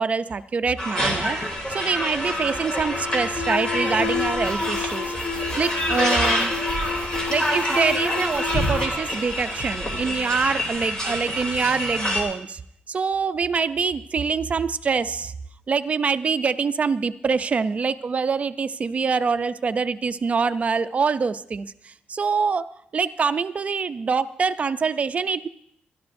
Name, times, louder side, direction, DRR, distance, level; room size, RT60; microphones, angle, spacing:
voice 1, 0.0-1.4 1.7-5.1 5.6-6.5 7.3-12.6 12.9-15.3 15.7-25.5, right 5 dB, 40° right, 11 dB, 0.5 m, -25 dB
sound 1, 0.8-12.2, equal, 20° left, 2.9 m, -27 dB
Alarm, 1.4-10.0, left 5 dB, 40° left, 0.8 m, -31 dB
24.0 x 12.0 x 2.6 m, 0.71 s
wide cardioid pair, 145°, 4 cm